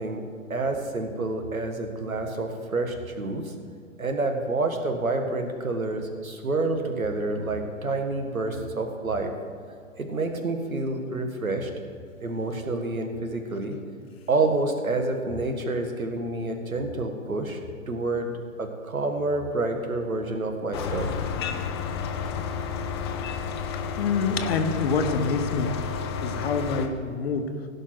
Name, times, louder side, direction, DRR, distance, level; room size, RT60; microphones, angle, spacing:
voice 1, 0.0-3.5 4.0-9.3 10.0-11.7 12.2-13.8 14.3-17.6 17.9-18.3 18.6-21.1, right 2 dB, 85° right, 5 dB, 1.7 m, -28 dB
sound 1, 20.7-26.9, left 6 dB, 20° left, 0.5 m, -31 dB
voice 2, 24.0-25.8 26.2-27.5, left 4 dB, 50° left, 7 dB, 1.1 m, -26 dB
16.5 x 5.5 x 6.2 m, 2.3 s
figure-of-eight pair, 130°, 41 cm